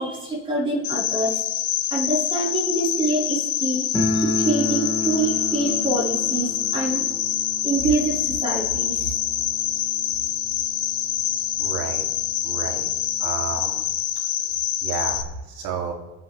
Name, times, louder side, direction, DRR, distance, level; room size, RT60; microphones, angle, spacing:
voice 1, 0.0-1.4 1.9-7.1 7.6-9.1, right 2 dB, 15° right, -6 dB, 5.3 m, -25 dB
Cricket, 0.8-15.2, left 12 dB, 70° left, 1.1 m, -26 dB
sound 1, 3.9-10.6 10.9-11.0 11.2-11.3 12.1-12.2 12.5-13.7, left 1 dB, 10° left, 2.5 m, -31 dB
voice 2, 11.6-12.1 12.4-12.9 13.2-13.9 14.8-15.9, right 6 dB, 60° right, 0 dB, 3.3 m, -31 dB
23.0 x 7.8 x 3.6 m, 1.0 s
cardioid pair, 155°, 34 cm